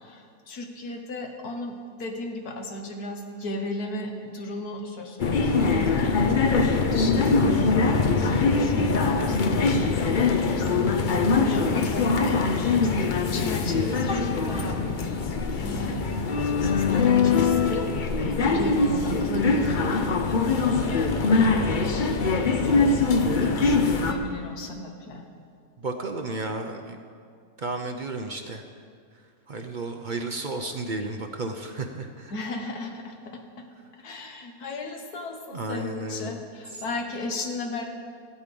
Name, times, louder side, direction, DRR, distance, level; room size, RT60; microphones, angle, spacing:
voice 1, 0.5-1.7 2.0-6.2 6.7-10.8 11.4-14.8 15.6-16.2 16.5-17.9 18.1-20.2 22.4-25.2 32.3-33.1 34.0-36.4 36.8-37.8, left 1 dB, 70° left, 3 dB, 1.8 m, -36 dB
sound 1, 5.2-24.1, left 4 dB, 45° left, 0.7 m, -22 dB
voice 2, 21.4-22.0 25.8-27.0 27.6-28.6 29.5-32.4 35.5-36.4 36.7-36.8, right 2 dB, 45° right, 4 dB, 0.6 m, -33 dB
16.5 x 8.4 x 5.3 m, 2.2 s
omnidirectional pair, 1.7 m